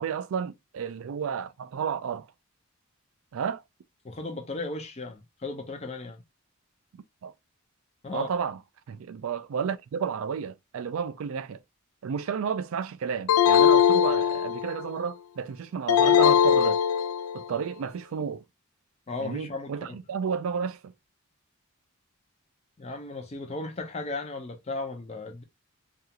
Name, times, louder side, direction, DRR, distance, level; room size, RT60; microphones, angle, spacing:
voice 1, 0.0-2.3 3.3-3.6 6.9-7.3 8.1-8.6 8.9-11.6 12.0-16.8 17.3-18.4 19.2-20.9, right 7 dB, 65° right, 0.3 m, -32 dB
voice 2, 4.0-6.2 8.0-8.3 19.1-20.0 22.8-25.4, left 3 dB, 30° left, 0.5 m, -36 dB
sound 1, 13.3-14.8 15.9-17.5, left 9 dB, 85° left, 0.4 m, -20 dB
2.4 x 2.4 x 2.8 m
head